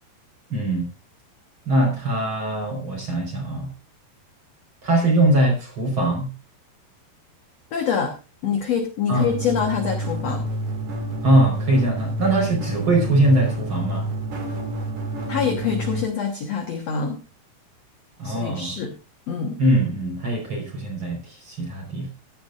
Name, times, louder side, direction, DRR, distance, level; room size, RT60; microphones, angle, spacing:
voice 1, 0.5-0.9 1.7-3.7 4.8-6.3 9.1-9.3 11.2-14.1 18.2-18.7 19.6-21.2 21.5-22.1, right 1 dB, 30° right, 1 dB, 5.0 m, -21 dB
voice 2, 7.7-8.2 8.4-10.5 15.3-17.2 18.2-18.9 19.3-19.6, left 6 dB, 65° left, 3 dB, 1.6 m, -25 dB
sound 1, 9.2-16.0, right 1 dB, 45° right, 3.7 m, -29 dB
15.0 x 11.5 x 2.5 m, 0.30 s
omnidirectional pair, 4.9 m